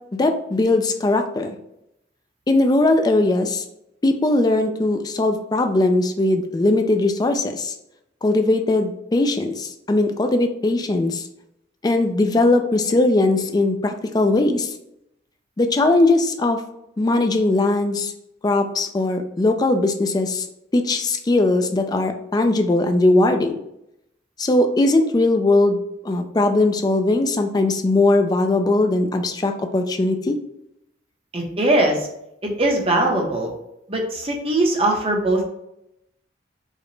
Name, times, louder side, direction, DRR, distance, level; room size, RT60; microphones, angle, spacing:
voice 1, 0.1-1.6 2.5-3.6 4.0-7.7 8.2-11.3 11.8-14.7 15.6-16.6 17.0-18.1 18.4-20.5 20.7-23.5 24.4-25.8 26.0-30.4, left 2 dB, 20° left, 6 dB, 0.3 m, -19 dB
voice 2, 31.3-32.1 32.4-33.5 33.9-35.4, right 1 dB, 30° right, 1 dB, 0.7 m, -20 dB
4.8 x 2.1 x 3.2 m, 0.82 s
head